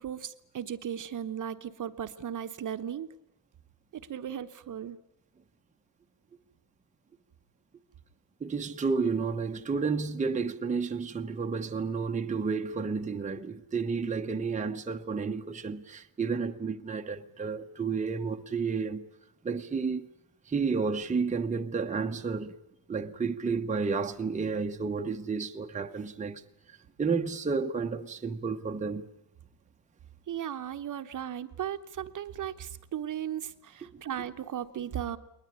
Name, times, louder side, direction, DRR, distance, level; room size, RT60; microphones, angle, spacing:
voice 1, 0.0-3.1 3.9-5.0 30.3-35.2, right 9 dB, 40° right, 1.1 m, -36 dB
voice 2, 8.4-19.0 19.4-20.1 20.5-22.5 22.9-26.4 26.7-29.1, right 5 dB, 15° right, 1.0 m, -31 dB
21.5 x 20.5 x 9.9 m
cardioid pair, 130°, 45 cm